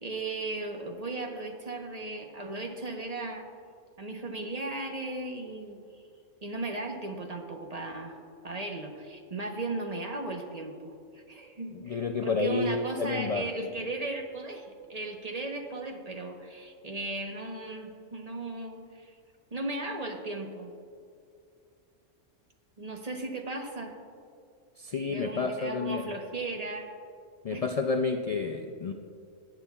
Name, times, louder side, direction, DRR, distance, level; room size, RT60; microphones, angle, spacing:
voice 1, 0.0-3.4 4.0-5.8 6.4-8.2 8.4-19.1 19.5-20.7 22.8-24.0 25.1-26.9 27.5-27.6, right 2 dB, 35° right, 2 dB, 1.0 m, -36 dB
voice 2, 11.7-13.5 24.8-26.1 27.4-28.9, left 4 dB, 75° left, 3 dB, 0.3 m, -30 dB
18.5 x 9.1 x 2.4 m, 2.4 s
omnidirectional pair, 1.3 m